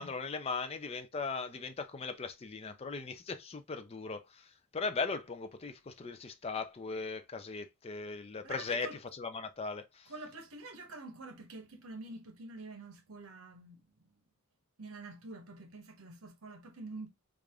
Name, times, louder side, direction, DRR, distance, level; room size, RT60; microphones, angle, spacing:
voice 1, 0.0-4.4 4.7-10.1, left 4 dB, 30° left, 0.4 m, -38 dB
voice 2, 8.4-9.0 10.1-13.8 14.8-17.1, right 2 dB, 85° right, 0.9 m, -47 dB
3.3 x 2.5 x 3.4 m
head